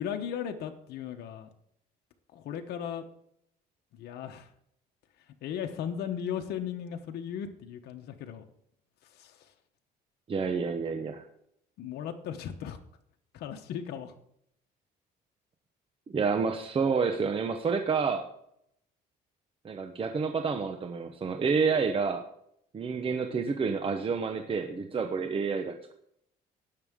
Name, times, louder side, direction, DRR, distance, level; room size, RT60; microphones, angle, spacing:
voice 1, 0.0-1.5 2.3-3.0 4.0-4.5 5.4-8.5 9.0-9.5 11.8-12.8 13.3-14.1, left 8 dB, 75° left, 5 dB, 1.1 m, -36 dB
voice 2, 10.3-11.2 16.1-18.3 19.6-22.2 22.7-25.9, right 5 dB, 35° right, 5 dB, 1.0 m, -29 dB
18.0 x 6.8 x 3.7 m, 0.72 s
cardioid pair, 110°, 17 cm